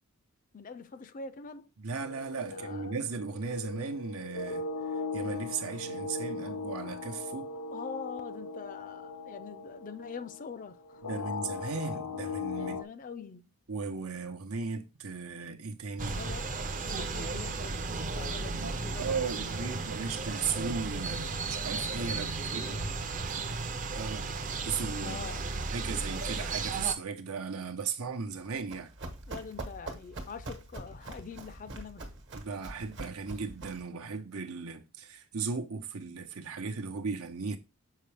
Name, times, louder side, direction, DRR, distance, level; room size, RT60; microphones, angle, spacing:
voice 1, 0.5-1.7 2.5-2.9 3.6-3.7 7.7-11.0 12.6-13.5 16.1-19.9 22.0-23.1 25.0-25.5 29.3-32.1, left 5 dB, 40° left, 0.4 m, -44 dB
voice 2, 1.8-4.7 5.1-7.5 11.0-12.8 13.7-16.2 19.0-22.8 23.9-24.3 24.6-25.2 25.7-28.9 32.3-37.6, right 5 dB, 80° right, 0.9 m, -36 dB
sound 1, 2.0-12.8, left 4 dB, 90° left, 0.6 m, -39 dB
sound 2, 16.0-26.9, right 3 dB, 35° right, 0.6 m, -34 dB
Run, 28.3-33.9, right 2 dB, 55° right, 1.2 m, -43 dB
6.5 x 4.7 x 3.4 m
head